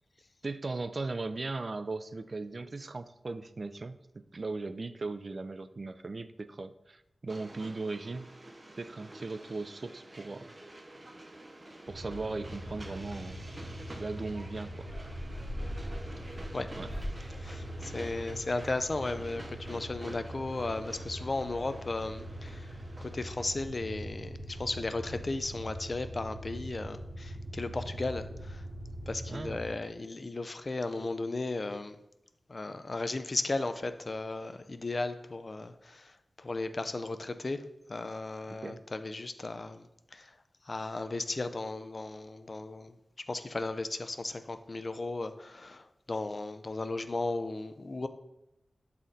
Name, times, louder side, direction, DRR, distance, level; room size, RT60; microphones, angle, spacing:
voice 1, 0.4-8.3 8.8-10.5 11.9-13.5 13.9-14.9 16.8-16.9 29.3-29.7 38.5-38.8, right 3 dB, 45° right, 13 dB, 0.3 m, -38 dB
Train, 7.3-23.4, right 1 dB, 25° right, 0.7 m, -49 dB
sound 1, 11.9-29.7, equal, 75° right, 1.1 m, -43 dB
sound 2, 14.9-18.2 18.5-19.0 19.3-19.4 19.6-19.7, equal, 20° left, 2.6 m, -41 dB
voice 2, 17.4-28.6 29.1-32.0 32.5-37.6 37.9-39.9 40.1-40.3 40.6-42.9 43.3-48.1, left 2 dB, 40° left, 9 dB, 0.4 m, -35 dB
7.5 x 4.1 x 3.9 m, 0.84 s
wide cardioid pair, 105°, 0 cm